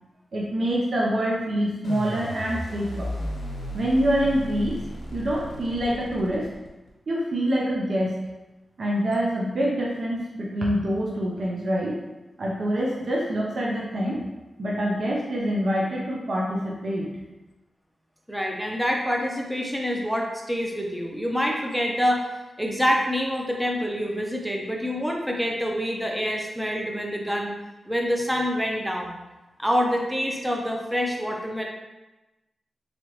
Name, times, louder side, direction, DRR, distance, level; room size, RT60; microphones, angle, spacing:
voice 1, 0.3-3.1 3.7-4.8 5.1-6.5 7.1-8.2 8.8-12.0 12.4-14.2 14.6-17.1, equal, 55° right, -4 dB, 0.6 m, -25 dB
sound 1, 1.8-6.9, left 1 dB, 90° left, 1.1 m, -34 dB
voice 2, 18.3-22.3 22.6-27.5 27.9-29.2 29.6-31.6, equal, ahead, 0 dB, 0.6 m, -26 dB
3.7 x 3.3 x 3.0 m, 1.0 s
wide cardioid pair, 135°, 0 cm